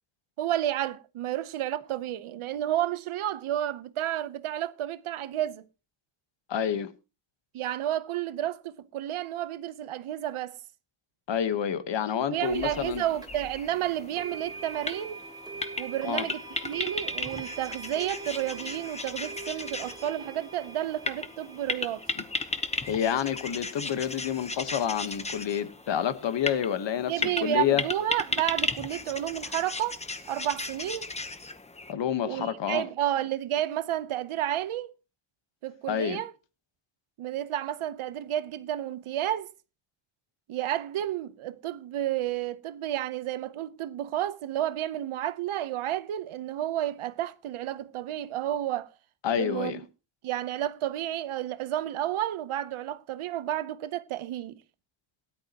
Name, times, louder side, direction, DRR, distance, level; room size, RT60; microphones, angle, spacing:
voice 1, 0.4-5.7 7.5-10.6 12.3-15.2 15.8-22.0 27.0-30.0 30.3-31.1 32.2-34.9 35.6-36.3 37.2-39.5 40.5-48.9 49.4-49.8 50.2-54.6, right 12 dB, 80° right, 0.9 m, -31 dB
voice 2, 6.5-6.9 11.3-13.0 16.0-16.2 22.9-27.8 31.9-32.8 35.9-36.2 49.2-49.8, left 9 dB, 60° left, 1.3 m, -28 dB
sound 1, 12.4-31.9, left 3 dB, 15° left, 0.9 m, -36 dB
sound 2, 13.2-13.3 14.2-25.1, right 3 dB, 10° right, 1.5 m, -43 dB
17.5 x 11.5 x 2.9 m
wide cardioid pair, 160°, 50 cm